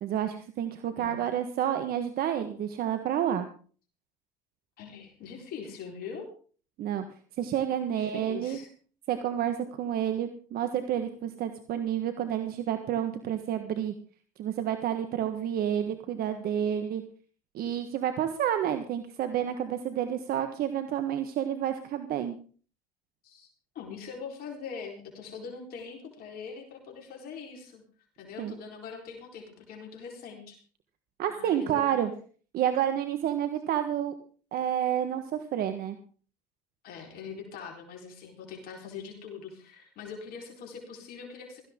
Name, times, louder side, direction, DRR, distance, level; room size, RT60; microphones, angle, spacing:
voice 1, 0.0-3.5 6.8-7.0 7.4-8.6 9.1-13.9 14.4-17.0 17.5-22.4 28.4-28.5 31.2-32.1 32.5-34.1 34.5-36.0, right 10 dB, 60° right, 8 dB, 1.5 m, -29 dB
voice 2, 4.8-6.3 7.9-8.7 23.2-23.5 23.7-27.8 28.2-30.6 31.3-32.1 36.8-41.6, left 6 dB, 60° left, 1 dB, 4.2 m, -42 dB
17.0 x 14.5 x 3.7 m, 0.42 s
hypercardioid pair, 75°, 17 cm